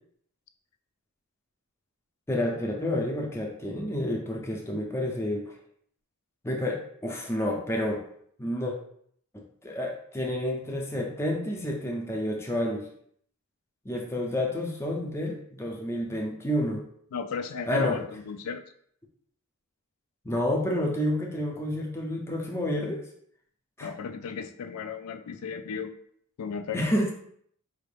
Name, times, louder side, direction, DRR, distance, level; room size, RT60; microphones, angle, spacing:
voice 1, 2.3-5.5 6.4-8.0 8.4-8.7 9.3-12.8 13.8-16.8 17.7-18.0 20.2-23.0 23.8-23.9 26.7-27.1, left 1 dB, 10° left, -1 dB, 0.5 m, -29 dB
voice 2, 17.1-18.6 23.8-25.9 26.4-27.0, left 5 dB, 85° left, 7 dB, 0.4 m, -34 dB
4.4 x 2.5 x 3.3 m, 0.65 s
head